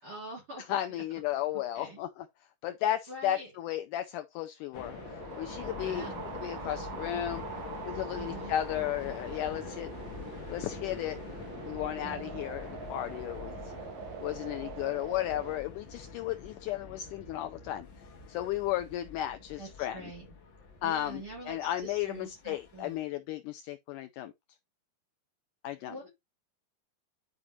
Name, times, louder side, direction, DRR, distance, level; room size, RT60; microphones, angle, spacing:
voice 1, 0.0-0.8 1.7-2.0 3.1-3.5 5.8-6.3 6.6-6.9 8.2-8.5 12.0-12.5 19.6-20.3 20.8-22.9 25.9-26.1, right 2 dB, 35° right, 3.9 m, -45 dB
voice 2, 0.7-2.3 2.6-6.1 6.4-7.4 7.8-9.9 10.5-11.2 11.6-13.7 14.2-17.9 18.3-20.1 20.8-24.3 25.6-26.1, left 12 dB, 85° left, 1.8 m, -34 dB
sound 1, 4.7-23.1, left 5 dB, 55° left, 1.4 m, -45 dB
sound 2, 4.8-15.6, right 8 dB, 70° right, 1.7 m, -44 dB
11.0 x 5.0 x 2.8 m
omnidirectional pair, 4.3 m